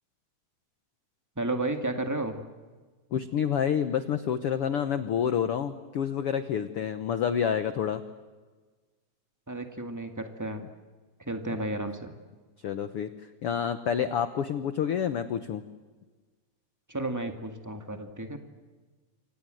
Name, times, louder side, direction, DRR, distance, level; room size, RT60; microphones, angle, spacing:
voice 1, 1.3-2.4 9.5-10.6 11.3-12.1 16.9-18.4, right 2 dB, 10° right, 5 dB, 1.0 m, -32 dB
voice 2, 3.1-8.0 11.5-11.6 12.6-13.1 13.4-15.6, left 8 dB, 75° left, 10 dB, 1.3 m, -28 dB
29.5 x 25.5 x 7.8 m, 1.4 s
omnidirectional pair, 4.0 m